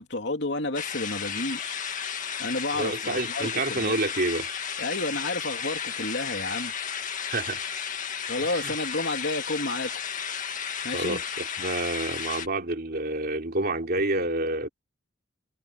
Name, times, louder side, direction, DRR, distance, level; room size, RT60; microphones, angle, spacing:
voice 1, 0.0-1.8 2.4-4.0 4.8-6.7 8.3-9.9 10.8-11.2, left 2 dB, 65° left, 3.2 m, -31 dB
sound 1, 0.7-12.5, left 7 dB, 40° left, 2.0 m, -33 dB
voice 2, 2.7-4.5 7.2-7.8 8.4-8.7 10.9-11.2 11.6-14.7, right 2 dB, 55° right, 3.3 m, -28 dB
head